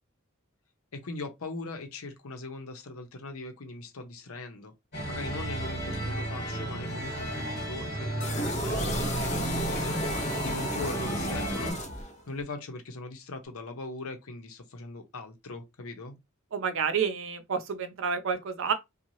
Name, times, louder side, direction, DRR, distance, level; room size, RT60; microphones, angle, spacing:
voice 1, 0.9-4.7 5.1-16.1, left 2 dB, 85° left, 0.8 m, -40 dB
sound 1, 4.9-11.7, right 1 dB, 50° left, 1.5 m, -33 dB
sound 2, 8.2-12.4, equal, 35° left, 0.7 m, -32 dB
voice 2, 16.5-18.7, right 6 dB, 65° right, 0.6 m, -29 dB
3.0 x 2.3 x 2.7 m
head